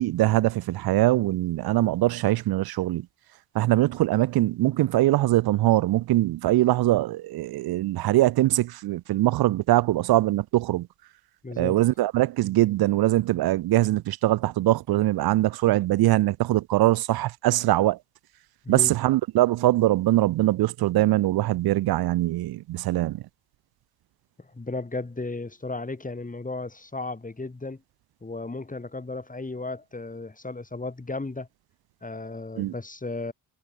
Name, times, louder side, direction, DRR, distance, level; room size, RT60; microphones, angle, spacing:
voice 1, 0.0-3.1 3.5-10.9 11.6-18.0 18.7-23.2 32.6-32.7, right 16 dB, 75° right, 0.6 m, -22 dB
voice 2, 11.4-11.8 18.6-18.9 24.4-27.8 28.2-31.5 32.0-33.3, left 3 dB, 20° left, 2.9 m, -34 dB
cardioid pair, 65°, 37 cm